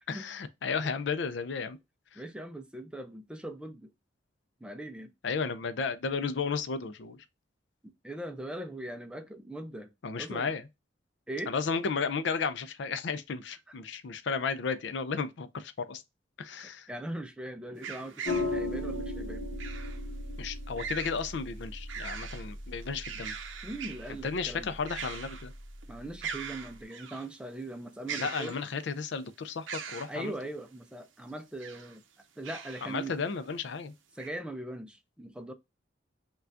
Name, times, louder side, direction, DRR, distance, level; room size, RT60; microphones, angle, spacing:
voice 1, 0.1-1.8 2.1-2.2 5.2-7.2 10.0-10.6 11.5-16.0 16.4-16.9 20.4-23.3 24.2-25.5 28.1-30.3 32.8-33.9, left 5 dB, 65° left, 0.4 m, -33 dB
voice 2, 2.2-3.9 4.6-5.1 8.0-10.5 11.3-11.5 16.9-19.5 23.6-24.8 25.9-28.6 30.1-32.0 32.4-33.2 34.1-35.5, right 1 dB, 5° right, 0.4 m, -40 dB
sound 1, 17.8-18.5 19.6-20.0 20.8-21.2 21.6-22.5 22.8-24.1 24.8-25.5 25.8-25.9 26.2-27.3 28.1-28.9 29.7-30.1 31.4-32.0 32.4-32.9 33.4-33.5 34.2-34.3, right 7 dB, 85° right, 0.6 m, -41 dB
sound 2, 18.2-26.8, left 2 dB, 50° left, 0.9 m, -38 dB
5.7 x 2.3 x 2.5 m
head